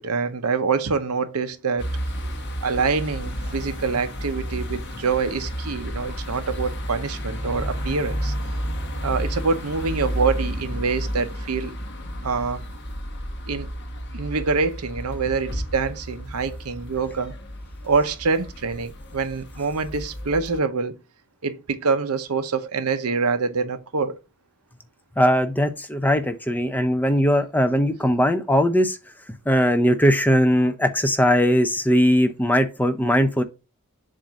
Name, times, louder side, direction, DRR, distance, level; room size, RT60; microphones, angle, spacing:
voice 1, 0.0-1.9 2.2-2.3 2.6-8.3 9.0-11.8 12.2-12.6 13.5-13.7 14.1-17.4 17.8-20.9 21.4-24.2, right 4 dB, 85° right, 0.8 m, -25 dB
sound 1, 1.8-20.6, equal, 50° left, 1.2 m, -32 dB
voice 2, 25.2-29.0 29.5-33.4, equal, 10° left, 0.5 m, -19 dB
7.5 x 2.6 x 5.0 m
head